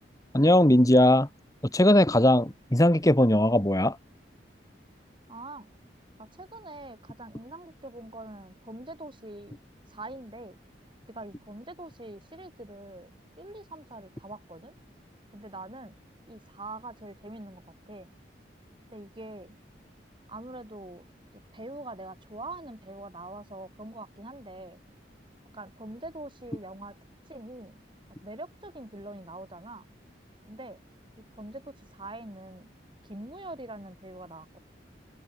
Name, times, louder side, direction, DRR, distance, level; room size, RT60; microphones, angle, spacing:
voice 1, 0.3-1.3 1.7-4.0, left 1 dB, 20° left, 2.0 m, -19 dB
voice 2, 5.3-5.7 6.2-9.6 9.9-10.6 11.1-13.1 13.4-14.7 15.3-16.0 16.3-18.1 18.9-19.6 20.3-21.1 21.5-24.8 25.5-27.0 27.3-27.8 28.1-29.9 30.5-30.8 31.2-32.7 33.0-34.6, right 2 dB, 25° right, 6.8 m, -43 dB
head